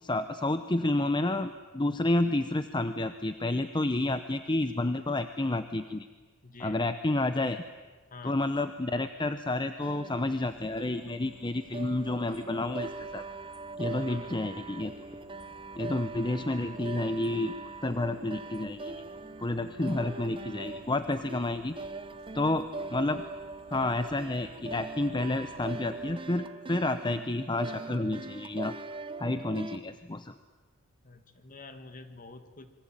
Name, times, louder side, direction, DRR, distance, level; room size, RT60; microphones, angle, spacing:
voice 1, 0.0-6.1 6.6-7.6 8.2-13.2 13.8-14.9 15.8-17.5 17.8-19.0 19.4-21.8 22.3-23.2 23.7-28.7 29.2-30.3, left 2 dB, 20° left, 10 dB, 0.8 m, -30 dB
voice 2, 6.4-6.9 8.1-8.5 14.0-14.4 31.0-32.7, left 3 dB, 40° left, 9 dB, 1.9 m, -48 dB
sound 1, 9.8-29.8, right 3 dB, 25° right, 0.8 m, -42 dB
sound 2, 10.5-26.1, left 1 dB, 85° left, 3.9 m, -58 dB
27.0 x 23.5 x 9.1 m, 1.3 s
head